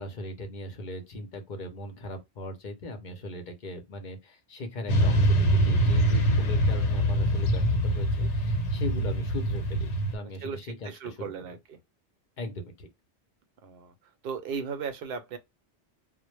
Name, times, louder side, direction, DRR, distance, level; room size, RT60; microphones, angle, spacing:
voice 1, 0.0-11.5 12.4-12.9, left 2 dB, 50° left, 0.6 m, -39 dB
Motorcycle / Traffic noise roadway noise, 4.9-10.2, right 1 dB, 85° left, 1.0 m, -24 dB
voice 2, 10.4-11.8 13.6-13.9 14.2-15.4, right 6 dB, 65° right, 0.7 m, -36 dB
2.0 x 2.0 x 2.9 m
omnidirectional pair, 1.2 m